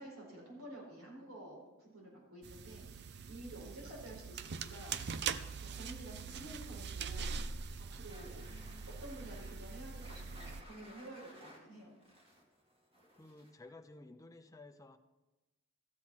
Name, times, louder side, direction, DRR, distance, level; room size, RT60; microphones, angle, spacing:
voice 1, 0.0-2.9 3.3-5.0 5.6-7.4 7.9-8.4 9.0-11.9, right 1 dB, 70° right, -2 dB, 4.3 m, -50 dB
sound 1, 2.3-2.7 3.1-4.4 4.9-5.4 5.9-6.0 6.9-7.0 7.8-7.9, right 4 dB, 85° right, 1.7 m, -63 dB
sound 2, 2.4-10.6, right 5 dB, 50° right, 0.5 m, -43 dB
sound 3, 8.0-13.7, equal, 25° right, 2.0 m, -59 dB
voice 2, 8.5-8.8 13.2-15.0, left 2 dB, 15° left, 7 dB, 0.6 m, -55 dB
14.0 x 8.0 x 4.4 m, 1.1 s
head